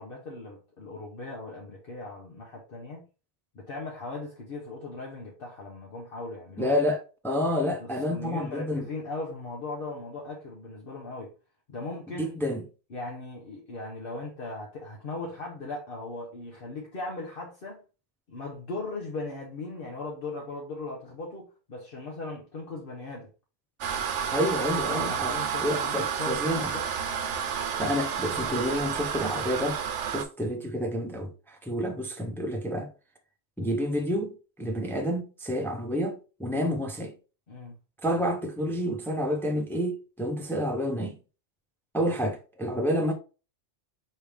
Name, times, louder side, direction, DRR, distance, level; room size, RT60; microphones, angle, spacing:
voice 1, 0.0-3.1 3.5-6.7 7.8-11.3 11.7-12.3 12.9-17.8 18.3-23.3 24.9-26.9 37.5-37.8, left 2 dB, 55° left, 1.1 m, -38 dB
voice 2, 6.6-8.9 12.2-12.6 24.3-26.7 27.8-29.8 30.1-32.9 33.6-37.1 38.0-41.2 41.9-43.1, equal, 5° left, 0.5 m, -29 dB
sound 1, 23.8-30.2, right 7 dB, 80° right, 1.0 m, -30 dB
4.7 x 3.3 x 3.4 m
omnidirectional pair, 1.2 m